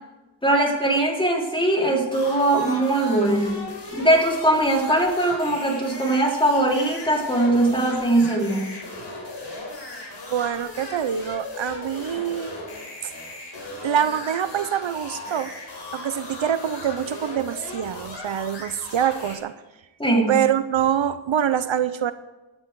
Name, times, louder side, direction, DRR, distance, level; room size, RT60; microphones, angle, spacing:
voice 1, 0.4-3.6 3.9-8.7 20.0-20.3, right 1 dB, 10° left, 0 dB, 3.2 m, -21 dB
sound 1, 2.1-19.4, left 2 dB, 60° left, 4.8 m, -37 dB
voice 2, 10.3-12.5 13.0-13.1 13.8-15.5 15.9-19.5 20.3-22.1, right 9 dB, 75° right, 12 dB, 0.8 m, -25 dB
16.0 x 12.0 x 4.7 m, 1.1 s
wide cardioid pair, 110°, 46 cm